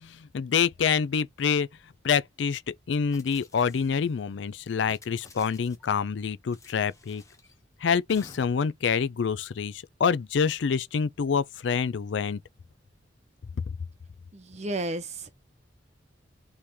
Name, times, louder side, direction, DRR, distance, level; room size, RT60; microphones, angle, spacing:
voice 1, 0.0-1.7 2.0-7.2 7.8-12.4, left 6 dB, 70° left, 0.4 m, -27 dB
sound 1, 3.1-4.2 4.8-6.0 6.5-7.5 8.1-8.7, left 3 dB, 15° left, 1.0 m, -53 dB
voice 2, 14.3-15.4, right 2 dB, 40° right, 0.8 m, -33 dB
3.5 x 3.2 x 4.2 m
head